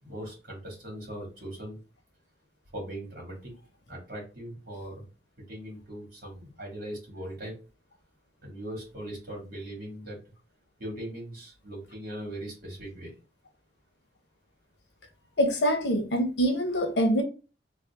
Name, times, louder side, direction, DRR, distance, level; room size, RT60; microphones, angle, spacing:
voice 1, 0.0-1.8 2.7-3.5 3.9-5.1 5.4-7.5 8.4-10.2 10.8-13.1, right 1 dB, 55° right, 2.0 m, -40 dB
voice 2, 15.4-17.2, equal, 80° left, 0.9 m, -24 dB
3.2 x 2.7 x 3.4 m
head